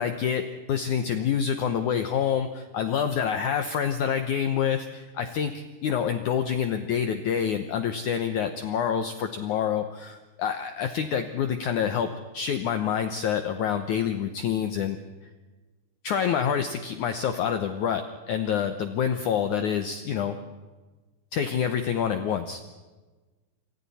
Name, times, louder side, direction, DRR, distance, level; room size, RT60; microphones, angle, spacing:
voice 1, 0.0-15.0 16.0-20.4 21.3-22.6, left 8 dB, 80° left, 8 dB, 1.7 m, -27 dB
28.0 x 25.5 x 4.2 m, 1.3 s
omnidirectional pair, 4.8 m